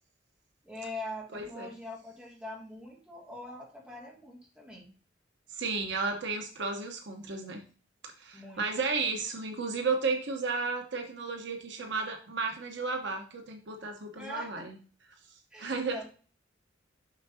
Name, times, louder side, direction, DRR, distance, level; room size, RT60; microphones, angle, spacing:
voice 1, 0.6-4.9 8.3-8.7 14.2-14.6 15.5-16.0, left 1 dB, 5° right, -3 dB, 2.3 m, -43 dB
voice 2, 1.3-1.7 5.5-7.6 8.2-14.8 15.6-16.0, right 4 dB, 65° right, 4 dB, 1.1 m, -33 dB
7.3 x 5.9 x 2.8 m, 0.40 s
head